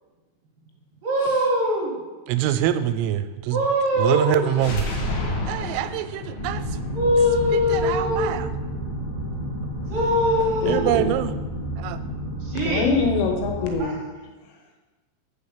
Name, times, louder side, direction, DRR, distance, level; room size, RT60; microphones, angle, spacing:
voice 1, 1.0-1.9 3.5-4.4 4.7-4.8 6.9-8.3 9.9-11.0 12.4-12.8, left 1 dB, 70° right, -3 dB, 2.1 m, -22 dB
voice 2, 2.3-3.6 4.0-4.9 5.5-6.6 7.5-8.5 10.7-11.3 11.8-12.0, right 12 dB, 90° right, 11 dB, 3.2 m, -24 dB
sound 1, 4.5-8.4, left 1 dB, 65° left, 2.3 m, -31 dB
sound 2, 6.3-13.8, right 1 dB, 35° left, 2.4 m, -31 dB
voice 3, 10.6-11.1 12.7-14.0, left 4 dB, 80° left, 3 dB, 3.7 m, -25 dB
6.9 x 6.6 x 7.2 m, 1.2 s
omnidirectional pair, 5.7 m